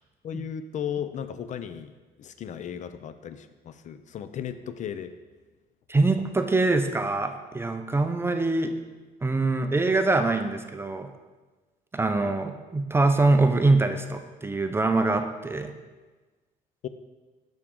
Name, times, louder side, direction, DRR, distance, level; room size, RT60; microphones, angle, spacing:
voice 1, 0.2-1.9 2.2-5.1 12.2-12.3 16.8-16.9, left 8 dB, 45° left, 11 dB, 0.4 m, -35 dB
voice 2, 5.9-8.7 9.2-11.1 11.9-15.7, right 2 dB, 15° right, 7 dB, 0.5 m, -24 dB
6.8 x 6.1 x 3.7 m, 1.3 s
cardioid pair, 110°, 17 cm